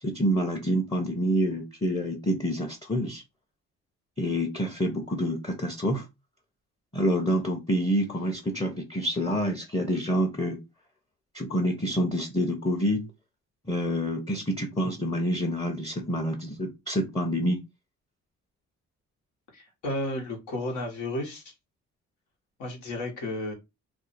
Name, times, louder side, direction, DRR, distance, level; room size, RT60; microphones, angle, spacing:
voice 1, 0.0-3.2 4.2-6.0 6.9-10.6 11.3-13.1 13.7-17.6, equal, 15° left, 0.8 m, -27 dB
voice 2, 19.5-21.4 22.6-23.5, left 1 dB, 85° left, 1.4 m, -32 dB
2.7 x 2.5 x 4.1 m
cardioid pair, 90°, 30 cm